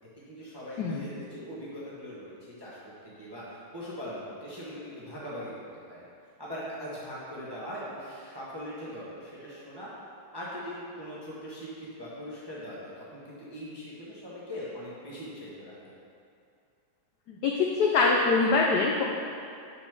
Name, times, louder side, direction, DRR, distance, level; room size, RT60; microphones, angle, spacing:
voice 1, 0.2-5.5 5.9-6.0 6.4-9.9 10.3-15.9, equal, 20° right, -8 dB, 0.6 m, -41 dB
voice 2, 17.3-19.0, left 4 dB, 85° left, -1 dB, 0.9 m, -24 dB
5.2 x 4.8 x 5.9 m, 2.5 s
omnidirectional pair, 2.4 m